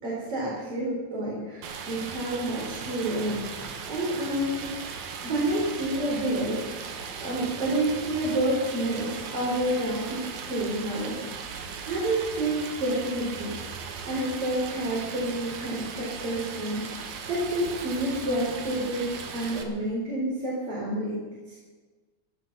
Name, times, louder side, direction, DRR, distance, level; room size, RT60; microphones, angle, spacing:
voice 1, 0.0-4.7 5.2-6.8 7.2-11.4 11.8-13.5 14.1-19.1 19.3-21.2 21.5-21.6, right 1 dB, 50° right, -6 dB, 4.9 m, -29 dB
Stream, 1.6-19.6, right 6 dB, 85° right, 2.9 m, -38 dB
17.0 x 12.5 x 6.0 m, 1.3 s
omnidirectional pair, 3.4 m